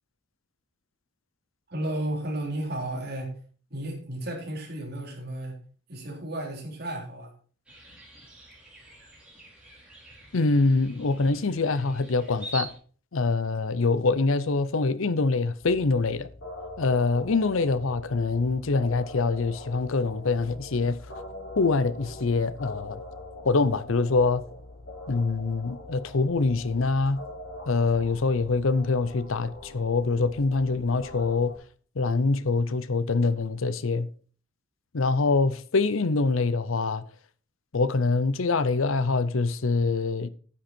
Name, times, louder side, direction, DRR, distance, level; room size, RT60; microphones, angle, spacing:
voice 1, 1.7-3.4 3.7-5.6 5.9-7.3, right 1 dB, 50° right, 3.7 m, -33 dB
sound 1, 7.7-12.7, right 2 dB, 5° right, 4.2 m, -44 dB
voice 2, 10.3-12.7 13.1-16.3 16.8-21.0 21.6-23.0 23.4-24.4 25.1-27.2 27.7-31.5 32.0-34.1 34.9-37.0 37.7-40.3, left 3 dB, 80° left, 0.7 m, -24 dB
sound 2, 15.6-31.5, left 1 dB, 60° left, 5.2 m, -43 dB
9.7 x 9.0 x 4.4 m
head